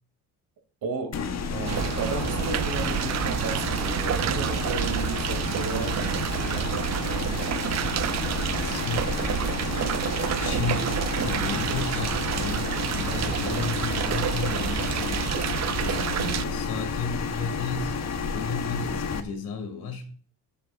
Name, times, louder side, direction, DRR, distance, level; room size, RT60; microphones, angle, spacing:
voice 1, 0.8-1.2 1.5-6.9 7.2-7.5 16.1-16.6, right 4 dB, 60° right, 3.1 m, -34 dB
sound 1, 1.1-19.2, left 5 dB, 40° left, 1.3 m, -31 dB
sound 2, 1.6-16.4, right 11 dB, 45° right, 0.5 m, -29 dB
voice 2, 8.6-9.4 10.1-15.3 15.8-18.0 18.3-20.1, left 4 dB, 65° left, 2.9 m, -34 dB
20.5 x 7.6 x 2.6 m
cardioid pair, 120°, 39 cm